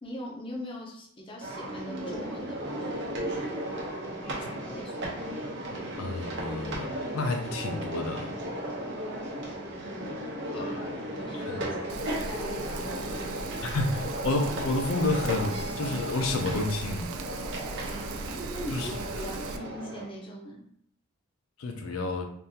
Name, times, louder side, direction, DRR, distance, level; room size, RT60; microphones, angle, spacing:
voice 1, 0.0-3.0 4.2-5.1 9.8-10.2 10.5-13.8 17.9-20.6, equal, 25° left, -2 dB, 0.5 m, -42 dB
sound 1, 1.4-20.1, right 1 dB, 55° right, 0.8 m, -35 dB
voice 2, 5.7-8.4 10.5-10.9 11.3-11.7 13.6-17.1 18.7-19.0 21.6-22.3, left 2 dB, 75° left, 4 dB, 0.5 m, -30 dB
sound 2, 7.5-8.6 11.0-16.8, equal, 25° right, 0.6 m, -44 dB
Rain, 11.9-19.6, right 4 dB, 75° right, 0.3 m, -39 dB
3.5 x 2.5 x 2.7 m, 0.64 s
head